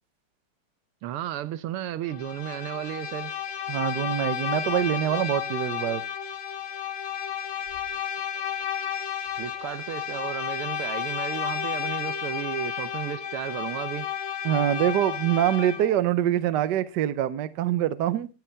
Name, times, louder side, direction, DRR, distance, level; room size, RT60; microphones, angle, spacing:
voice 1, 1.0-3.3 9.4-14.1, right 12 dB, 80° right, 1.7 m, -33 dB
Bowed string instrument, 2.1-16.0, left 9 dB, 70° left, 2.0 m, -32 dB
voice 2, 3.7-6.0 14.4-18.3, right 11 dB, 65° right, 1.2 m, -24 dB
23.0 x 8.3 x 3.4 m
omnidirectional pair, 2.4 m